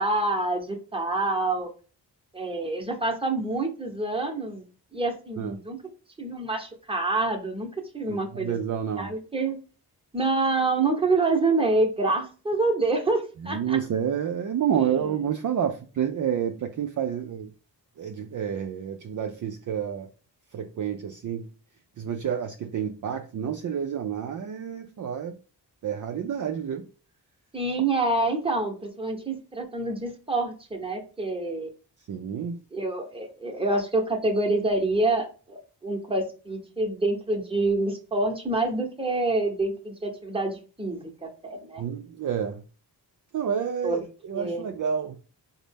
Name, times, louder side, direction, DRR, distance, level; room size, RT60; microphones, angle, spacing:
voice 1, 0.0-1.7 2.3-4.6 4.9-5.8 6.2-7.7 7.9-8.6 9.0-9.6 10.1-13.8 14.8-14.9 27.5-31.7 32.7-41.8 43.8-44.0 44.3-44.6, right 2 dB, 15° right, 0.8 m, -27 dB
voice 2, 8.1-9.1 13.4-17.5 18.0-20.1 20.5-21.5 22.0-25.4 25.8-26.9 32.1-32.6 41.8-42.6 43.3-45.2, right 8 dB, 50° right, 0.4 m, -29 dB
3.9 x 2.1 x 3.3 m
cardioid pair, 75°, 42 cm